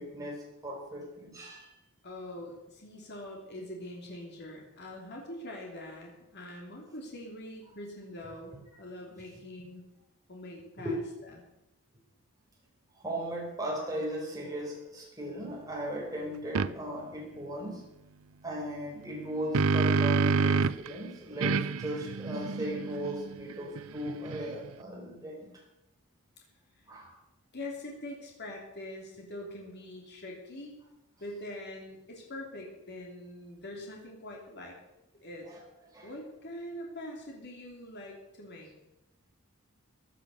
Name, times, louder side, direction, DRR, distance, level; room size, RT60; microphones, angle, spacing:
voice 1, 0.0-1.8 10.8-10.9 12.9-17.8 18.4-25.5 26.9-27.1 35.5-35.6 35.9-36.1, equal, 15° right, -2 dB, 4.9 m, -37 dB
voice 2, 2.0-9.9 10.3-11.4 26.8-27.1 27.5-30.7 31.2-34.8 35.1-35.5 36.0-38.7, left 1 dB, 50° left, -1 dB, 3.1 m, -44 dB
sound 1, 16.5-16.7 19.1-20.9 21.4-24.7, right 5 dB, 65° right, 0.5 m, -28 dB
16.0 x 11.0 x 6.5 m, 0.88 s
head